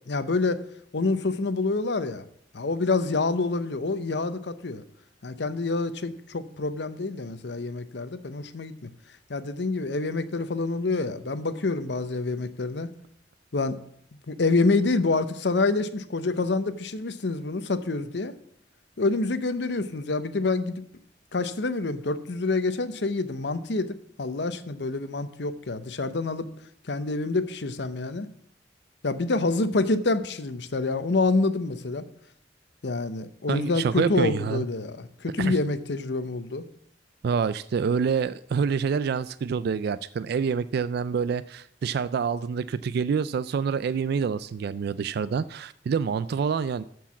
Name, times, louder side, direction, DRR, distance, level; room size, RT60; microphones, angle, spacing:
voice 1, 0.1-0.6 0.9-2.2 2.5-4.8 5.2-8.9 9.3-12.9 13.5-13.8 14.3-18.3 19.0-20.8 21.3-26.5 26.9-28.3 29.0-32.0 32.8-36.6, left 3 dB, 70° left, 12 dB, 0.8 m, -27 dB
voice 2, 33.5-34.6 35.4-35.6 37.2-46.8, right 6 dB, 60° right, 14 dB, 0.3 m, -27 dB
13.0 x 4.7 x 7.1 m, 0.67 s
head